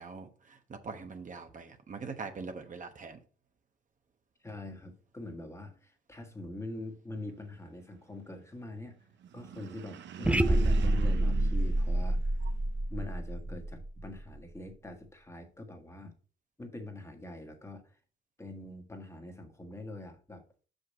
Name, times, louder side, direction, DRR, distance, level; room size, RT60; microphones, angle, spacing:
voice 1, 0.0-3.2, right 4 dB, 40° right, 6 dB, 1.0 m, -43 dB
voice 2, 4.4-9.0 9.3-12.3 12.9-16.1 16.6-18.0 18.4-20.4, left 2 dB, 15° left, 4 dB, 1.5 m, -44 dB
sound 1, 9.2-12.8, right 9 dB, 65° right, 0.8 m, -42 dB
sound 2, 10.2-14.4, right 1 dB, 5° right, 0.4 m, -28 dB
5.9 x 5.4 x 5.3 m, 0.40 s
cardioid pair, 90°, 20 cm